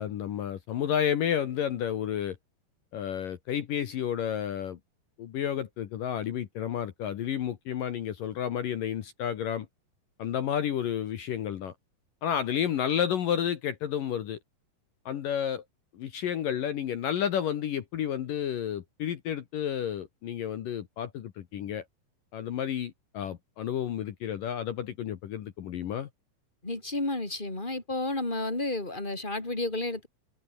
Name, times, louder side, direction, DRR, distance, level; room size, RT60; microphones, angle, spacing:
voice 1, 0.0-2.4 2.9-4.8 5.2-9.7 10.2-11.7 12.2-14.4 15.1-15.6 15.9-21.8 22.3-26.1, left 9 dB, 60° left, 2.4 m, -31 dB
voice 2, 26.6-30.1, left 2 dB, 10° left, 4.4 m, -31 dB
omnidirectional pair, 5.5 m